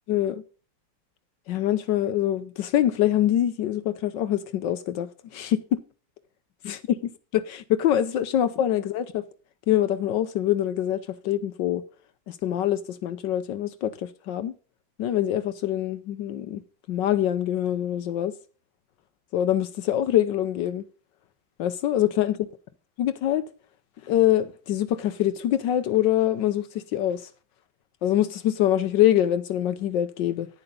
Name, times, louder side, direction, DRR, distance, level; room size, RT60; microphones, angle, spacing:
voice 1, 0.1-0.4 1.5-5.8 6.6-7.0 7.3-9.0 9.7-11.8 12.3-13.9 14.3-14.5 15.0-16.6 16.9-18.3 19.3-20.8 21.6-22.3 23.0-23.5 24.0-27.2 28.0-30.5, left 12 dB, 75° left, 1.3 m, -24 dB
11.0 x 9.9 x 3.9 m
omnidirectional pair, 2.0 m